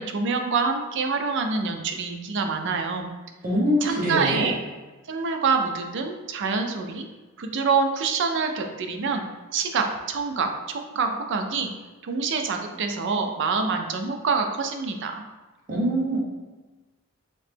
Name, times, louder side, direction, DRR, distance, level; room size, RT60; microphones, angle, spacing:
voice 1, 0.0-3.1 3.8-4.5 5.1-7.0 7.4-9.2 9.5-10.5 10.9-11.7 12.0-15.2, right 4 dB, 60° right, 5 dB, 0.4 m, -26 dB
voice 2, 3.4-4.5 15.7-16.2, equal, 40° right, -4 dB, 0.8 m, -23 dB
3.2 x 2.8 x 3.3 m, 1.2 s
head